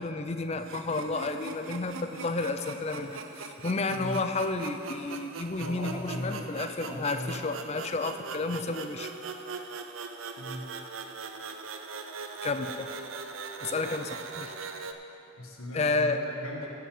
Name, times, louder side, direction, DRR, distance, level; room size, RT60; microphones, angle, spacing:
voice 1, 0.0-3.2 3.6-9.1 12.4-12.9 13.6-14.5 15.7-16.2, left 3 dB, 30° left, 8 dB, 0.5 m, -31 dB
sound 1, 0.6-14.9, right 4 dB, 70° right, 0.6 m, -41 dB
voice 2, 3.9-4.2 5.6-6.5 6.8-7.4 10.4-10.7 15.4-16.7, left 1 dB, 85° left, -1 dB, 1.4 m, -38 dB
15.5 x 6.8 x 5.0 m, 2.9 s
head